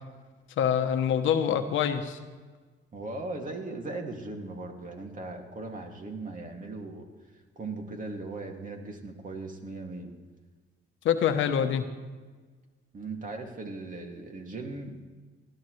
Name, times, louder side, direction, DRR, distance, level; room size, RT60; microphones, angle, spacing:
voice 1, 0.6-2.2 11.0-11.9, left 8 dB, 75° left, 7 dB, 1.1 m, -25 dB
voice 2, 2.9-7.1 7.6-10.1 12.9-15.1, right 2 dB, 40° right, 2 dB, 2.5 m, -38 dB
18.5 x 13.5 x 3.3 m, 1.4 s
cardioid pair, 90°, 20 cm